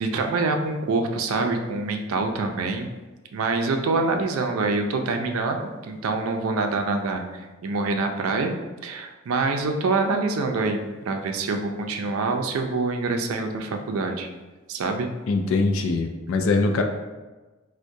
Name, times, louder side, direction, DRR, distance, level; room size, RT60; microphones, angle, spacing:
voice 1, 0.0-2.9 3.3-8.6 8.8-10.8 11.1-14.3 14.7-15.1, right 3 dB, 90° right, 5 dB, 0.4 m, -25 dB
voice 2, 15.3-16.8, left 3 dB, 70° left, 3 dB, 0.3 m, -22 dB
4.4 x 2.1 x 2.6 m, 1.2 s
head